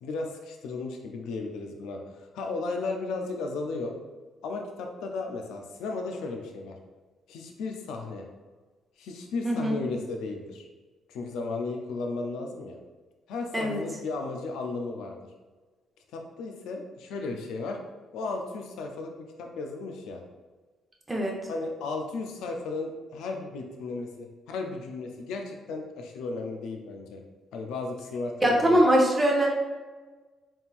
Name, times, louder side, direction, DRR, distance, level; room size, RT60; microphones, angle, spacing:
voice 1, 0.0-3.9 4.4-6.8 7.3-8.3 9.0-10.7 11.1-12.8 13.3-15.2 16.1-17.8 18.1-20.2 21.5-27.2 27.5-28.8, left 3 dB, 85° left, 3 dB, 0.6 m, -35 dB
voice 2, 9.4-9.8 13.5-13.8 21.1-21.4 28.4-29.5, equal, 15° right, -1 dB, 1.0 m, -22 dB
4.3 x 3.6 x 2.5 m, 1.3 s
cardioid pair, 90°, 0 cm